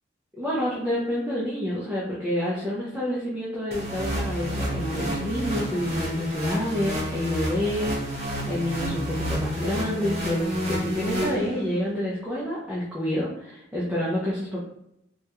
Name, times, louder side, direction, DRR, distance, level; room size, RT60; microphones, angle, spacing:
voice 1, 0.4-14.6, left 1 dB, 5° right, -7 dB, 0.5 m, -28 dB
sound 1, 3.7-11.9, equal, 35° right, 0.8 m, -30 dB
3.3 x 2.3 x 2.8 m, 0.80 s
head